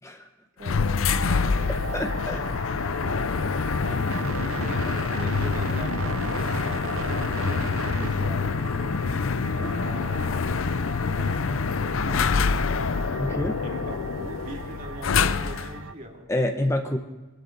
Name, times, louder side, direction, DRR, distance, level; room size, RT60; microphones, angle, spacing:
sound 1, 0.6-15.8, left 5 dB, 75° left, 0.5 m, -26 dB
voice 1, 0.6-1.8 3.8-6.6 7.1-8.6 9.5-10.5 11.1-11.6 12.1-12.8 13.6-16.3 16.7-16.8, right 1 dB, 40° right, 1 dB, 2.5 m, -42 dB
sound 2, 1.0-15.9, right 4 dB, 85° right, 0.7 m, -37 dB
voice 2, 1.9-2.4 13.2-13.6 16.3-17.0, left 1 dB, 15° left, 5 dB, 0.9 m, -27 dB
23.5 x 12.5 x 4.0 m, 1.2 s
head